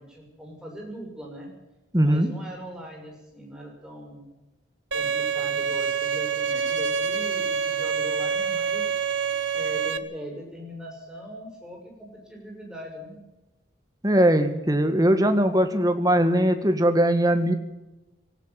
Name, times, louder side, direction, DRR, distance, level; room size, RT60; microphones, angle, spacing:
voice 1, 0.0-1.5 2.0-4.2 4.9-8.9 9.5-13.2, right 1 dB, 5° right, -1 dB, 6.3 m, -40 dB
voice 2, 1.9-2.3 14.0-17.6, right 1 dB, 20° right, 7 dB, 1.8 m, -20 dB
Bowed string instrument, 4.9-10.0, right 6 dB, 85° right, 1.5 m, -26 dB
18.0 x 15.5 x 9.3 m, 0.99 s
head